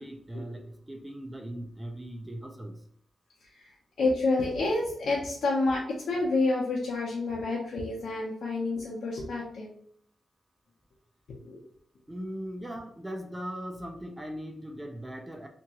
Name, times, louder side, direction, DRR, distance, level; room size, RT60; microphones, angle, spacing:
voice 1, 0.0-2.8 12.1-15.5, equal, 10° right, 4 dB, 0.4 m, -39 dB
voice 2, 4.0-9.7 11.4-11.6, left 2 dB, 75° left, -4 dB, 0.8 m, -29 dB
3.5 x 2.9 x 2.9 m, 0.63 s
wide cardioid pair, 155°, 0 cm